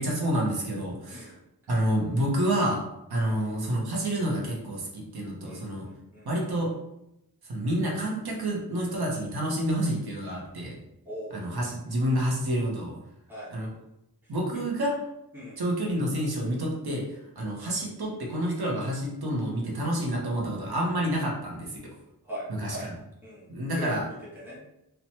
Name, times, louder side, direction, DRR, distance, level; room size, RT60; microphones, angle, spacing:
voice 1, 0.0-1.3 1.7-2.8 3.1-5.9 6.2-6.7 7.4-10.7 11.3-12.9 13.5-13.7 14.3-14.9 15.6-21.8 22.6-22.9 23.5-24.0, right 1 dB, 65° right, -2 dB, 0.8 m, -28 dB
voice 2, 5.4-6.3 11.0-11.4 13.3-13.5 14.2-14.6 15.3-15.6 22.2-22.9 23.2-23.5 23.7-24.6, equal, 5° right, -7 dB, 1.1 m, -41 dB
2.8 x 2.2 x 2.8 m, 0.85 s
wide cardioid pair, 65°, 40 cm